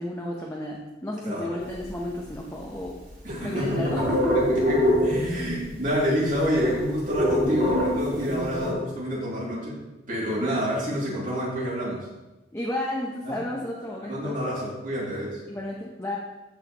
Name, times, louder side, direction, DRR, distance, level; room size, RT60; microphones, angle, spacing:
voice 1, 0.0-3.0 3.4-4.6 12.5-14.4 15.5-16.2, left 1 dB, 15° left, -2 dB, 0.8 m, -32 dB
voice 2, 1.2-1.6 3.2-4.0 4.3-4.8 5.0-9.8 10.1-12.1 13.2-13.4 14.0-15.4, equal, 45° right, -5 dB, 2.8 m, -28 dB
sound 1, 1.6-2.8 3.0-5.6 5.9-6.0 6.2-8.7, equal, 70° right, 3.0 m, -24 dB
14.0 x 5.7 x 3.0 m, 1.1 s
head